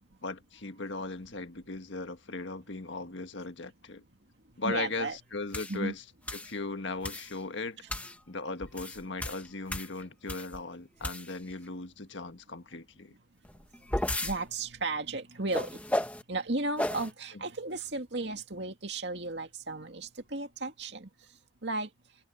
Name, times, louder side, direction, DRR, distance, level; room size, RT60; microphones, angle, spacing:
voice 1, 0.2-4.0 4.6-6.0 6.3-13.1 17.3-17.4, left 3 dB, 70° left, 1.6 m, -38 dB
voice 2, 4.6-5.2 5.7-5.9 14.2-21.1 21.6-21.9, right 2 dB, 60° right, 2.4 m, -35 dB
sound 1, 5.5-5.8 6.3-6.5 7.0-7.4 7.9-8.2 8.6-10.6 11.0-11.5 13.4-14.4 15.5-16.2 16.8-17.1, left 1 dB, 5° left, 1.6 m, -34 dB
head